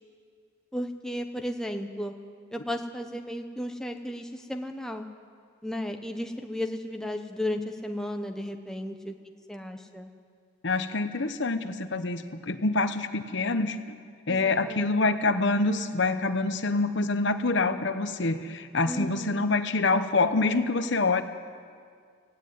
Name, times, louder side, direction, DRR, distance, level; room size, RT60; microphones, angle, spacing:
voice 1, 0.7-2.1 2.5-5.0 5.6-9.1 9.5-10.1 14.3-15.2 18.9-19.5, left 1 dB, 5° left, 4 dB, 0.8 m, -34 dB
voice 2, 10.6-13.8 14.3-21.2, left 3 dB, 55° left, 10 dB, 0.9 m, -26 dB
17.5 x 16.0 x 9.3 m, 2.1 s
head